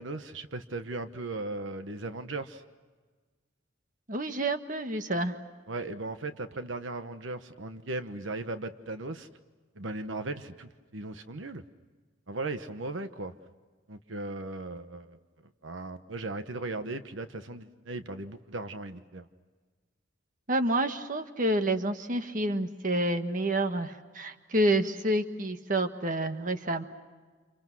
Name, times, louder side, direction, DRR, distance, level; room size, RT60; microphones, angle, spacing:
voice 1, 0.0-2.6 5.7-9.3 9.8-11.6 12.3-13.3 13.9-15.2 15.6-19.3, right 2 dB, 75° right, 9 dB, 1.1 m, -37 dB
voice 2, 4.1-5.3 20.5-26.8, right 1 dB, 40° right, 7 dB, 1.5 m, -28 dB
29.5 x 29.0 x 6.2 m, 1.4 s
head